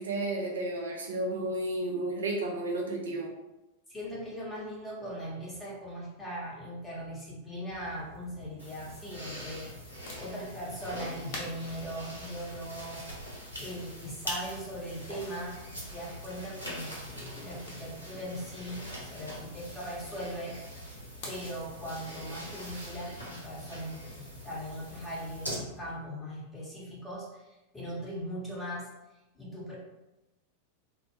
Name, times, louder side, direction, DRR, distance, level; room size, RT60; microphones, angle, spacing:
voice 1, 0.0-3.3, right 2 dB, 70° right, -1 dB, 0.5 m, -32 dB
voice 2, 3.9-9.7 10.2-13.0 13.6-20.6 21.2-28.9 29.3-29.8, equal, 10° left, -6 dB, 0.9 m, -40 dB
sound 1, 7.7-25.9, left 2 dB, 50° left, 0.6 m, -50 dB
sound 2, 8.6-25.5, equal, 85° left, 0.8 m, -43 dB
2.1 x 2.0 x 3.0 m, 0.99 s
figure-of-eight pair, 90°, 0 cm